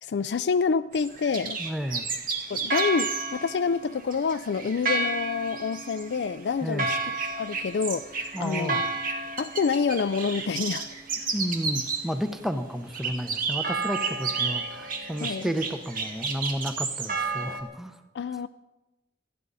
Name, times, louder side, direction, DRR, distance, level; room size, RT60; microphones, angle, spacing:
voice 1, 0.0-1.6 2.5-7.0 7.3-8.9 9.4-11.0 15.2-15.4 18.1-18.5, left 5 dB, 70° left, 10 dB, 0.4 m, -27 dB
sound 1, 0.9-12.1 12.9-17.6, right 4 dB, 50° right, 2.0 m, -31 dB
voice 2, 1.6-2.1 6.6-6.9 8.3-8.9 11.3-18.0, equal, ahead, 8 dB, 0.9 m, -32 dB
28.0 x 11.5 x 4.1 m, 1.0 s
head